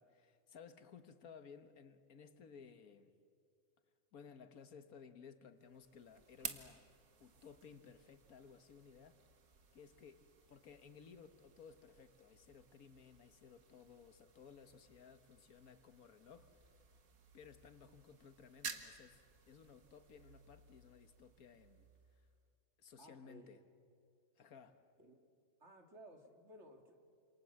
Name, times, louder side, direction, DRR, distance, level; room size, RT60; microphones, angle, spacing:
voice 1, 0.0-3.1 4.1-6.8 7.2-9.2 9.7-16.5 17.3-22.3 22.8-23.6 24.4-24.8, left 6 dB, 85° left, 10 dB, 1.7 m, -58 dB
sound 1, 5.6-22.5, right 5 dB, 85° right, 2.0 m, -55 dB
voice 2, 23.0-23.6 25.0-25.2 25.6-27.0, equal, 50° right, 4 dB, 2.5 m, -58 dB
28.0 x 27.0 x 7.6 m, 2.3 s
omnidirectional pair, 1.5 m